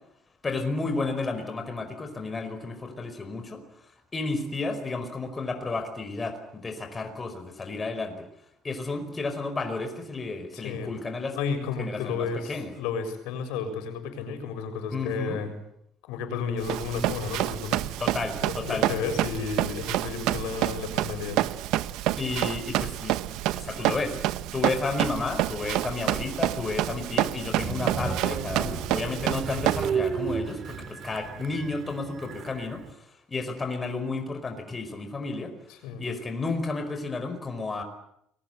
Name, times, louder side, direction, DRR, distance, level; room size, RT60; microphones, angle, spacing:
voice 1, 0.4-8.3 8.6-11.4 11.8-12.7 14.9-15.4 18.0-19.0 22.2-23.1 23.6-24.2 24.5-35.5 36.0-37.8, left 3 dB, 20° left, 6 dB, 5.0 m, -32 dB
voice 2, 10.5-10.9 11.3-15.6 16.1-17.9 18.4-21.4 35.8-36.1, left 5 dB, 85° left, 8 dB, 6.6 m, -32 dB
Run, 16.6-29.9, right 15 dB, 70° right, 1.2 m, -28 dB
Train, 27.6-32.9, right 6 dB, 45° right, 3.6 m, -33 dB
29.5 x 22.0 x 8.0 m, 0.76 s
cardioid pair, 140°, 0 cm